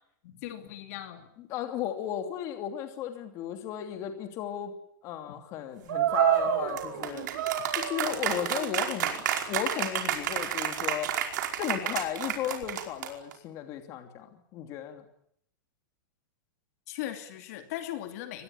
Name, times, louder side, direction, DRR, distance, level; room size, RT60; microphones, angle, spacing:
voice 1, 0.2-1.3 5.3-5.4 16.9-18.4, left 13 dB, 45° left, 7 dB, 2.8 m, -38 dB
voice 2, 1.5-4.7 5.0-7.3 7.7-11.1 11.6-15.0, left 10 dB, 30° left, 6 dB, 2.9 m, -35 dB
sound 1, 5.9-13.3, right 10 dB, 60° right, 5.0 m, -29 dB
24.5 x 19.5 x 9.8 m, 0.70 s
supercardioid pair, 175°, 11 cm